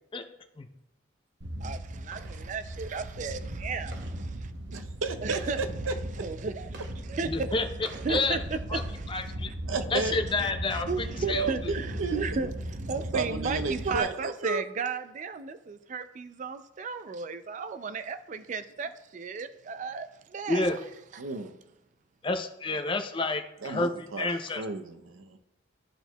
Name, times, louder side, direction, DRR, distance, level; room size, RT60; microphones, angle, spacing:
sound 1, 1.4-14.0, right 1 dB, 60° right, 0.8 m, -37 dB
voice 1, 1.6-4.8 5.2-5.6 6.2-6.7 7.1-7.5 7.9-8.4 8.7-9.1 10.9-12.5 12.9-20.8 21.1-21.3, right 5 dB, 40° right, 0.3 m, -34 dB
voice 2, 4.7-6.2 8.1-8.2 9.7-10.2 11.3-12.3 13.1-14.6 21.2-21.6 23.6-24.3 24.5-25.4, right 3 dB, 90° right, 0.7 m, -33 dB
voice 3, 7.2-7.7 8.1-8.4 8.7-8.8 9.1-9.5 9.9-11.5 20.5-20.8 22.2-24.6, left 3 dB, 25° left, 0.5 m, -29 dB
12.5 x 4.5 x 2.2 m
head